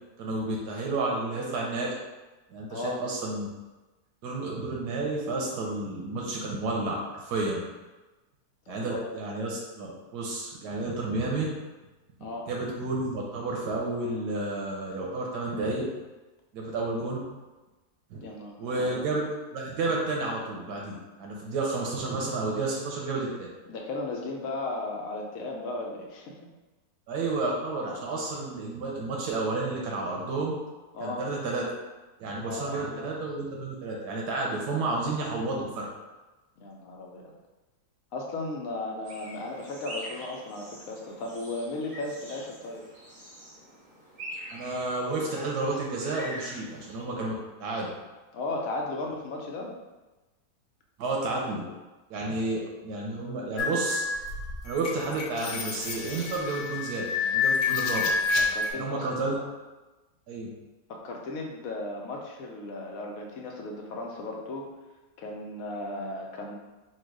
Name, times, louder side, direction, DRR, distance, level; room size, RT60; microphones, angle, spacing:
voice 1, 0.2-2.0 2.5-3.5 4.2-7.6 8.7-11.5 12.5-15.9 16.5-17.2 18.1-18.2 18.6-19.2 19.5-23.5 27.1-30.6 31.0-31.6 32.2-35.9 44.5-47.3 47.6-47.9 51.0-51.6 52.1-54.0 54.6-58.1 58.7-59.3 60.3-60.5, right 2 dB, 90° right, -2 dB, 1.3 m, -31 dB
voice 2, 2.7-3.0 8.7-9.0 12.2-12.5 18.2-19.2 23.7-26.3 30.9-31.2 32.4-33.1 36.6-37.3 38.1-42.9 48.3-49.7 52.2-52.6 58.5-59.5 60.9-64.7 65.2-66.6, left 2 dB, 65° left, 0 dB, 1.1 m, -36 dB
sound 1, 39.1-47.0, equal, 55° right, 1.9 m, -44 dB
sound 2, 53.6-58.7, left 4 dB, 85° left, 1.2 m, -28 dB
4.5 x 2.4 x 4.6 m, 1.1 s
omnidirectional pair, 1.7 m